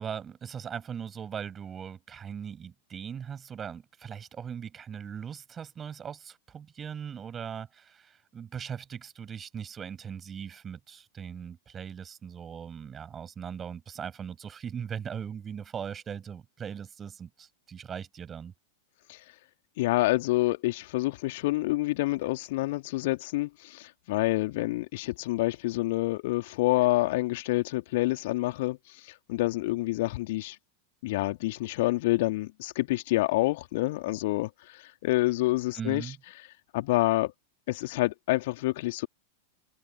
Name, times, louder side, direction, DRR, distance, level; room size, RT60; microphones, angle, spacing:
voice 1, 0.0-18.5 35.8-36.2, right 7 dB, 20° right, 7.1 m, -39 dB
voice 2, 19.8-28.8 29.1-30.6 31.0-36.0 36.7-37.3 37.7-39.1, left 19 dB, 50° left, 2.8 m, -27 dB
figure-of-eight pair, 90°, 0 cm